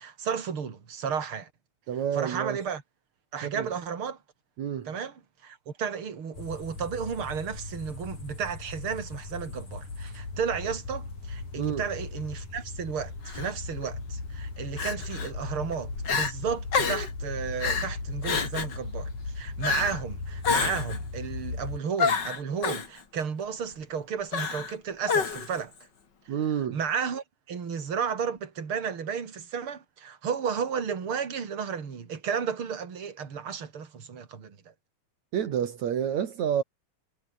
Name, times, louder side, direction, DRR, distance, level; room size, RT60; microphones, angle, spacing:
voice 1, 0.0-1.5 2.1-2.8 3.3-4.2 4.9-25.7 26.7-34.6, right 7 dB, 45° right, 3.7 m, -33 dB
voice 2, 1.9-2.6 3.4-3.7 4.6-4.9 11.6-11.8 26.3-26.8 35.3-36.6, right 9 dB, 75° right, 3.2 m, -29 dB
sound 1, 6.3-21.8, left 3 dB, 85° left, 9.5 m, -37 dB
Crying sobbing, 13.3-13.5 14.8-15.3 15.7-15.8 16.0-16.3 16.7-17.1 17.6-17.9 18.2-18.8 19.6-20.0 20.4-21.0 22.0-22.9 24.3-24.7 25.1-25.6, left 5 dB, 40° left, 2.8 m, -28 dB
omnidirectional pair, 3.3 m